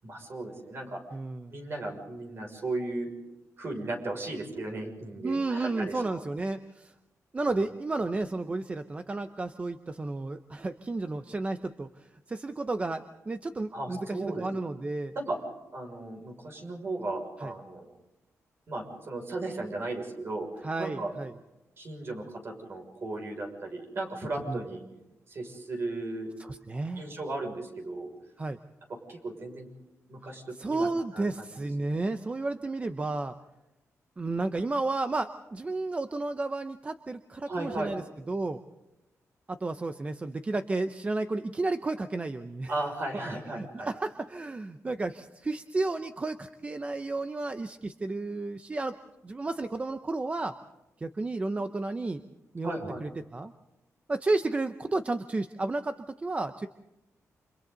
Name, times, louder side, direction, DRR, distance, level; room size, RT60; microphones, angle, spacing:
voice 1, 0.0-1.0 1.5-3.1 3.6-6.2 13.7-14.5 15.1-15.4 15.7-17.9 18.7-20.5 20.8-21.1 21.8-24.8 25.3-26.3 26.9-28.1 29.1-29.7 30.1-30.9 31.1-31.3 37.5-37.9 42.7-43.9 52.6-53.0, right 2 dB, 45° right, 2 dB, 6.4 m, -35 dB
voice 2, 1.1-1.6 5.2-6.9 7.3-15.1 17.4-17.5 20.6-21.3 24.5-24.6 26.4-27.1 28.4-28.6 30.6-33.3 34.2-38.0 38.3-38.6 39.5-42.7 43.5-49.0 49.2-50.5 51.0-52.2 52.5-53.5 54.1-56.7, right 2 dB, 25° right, 9 dB, 0.8 m, -32 dB
29.5 x 28.0 x 4.0 m, 0.96 s
wide cardioid pair, 150°, 6 cm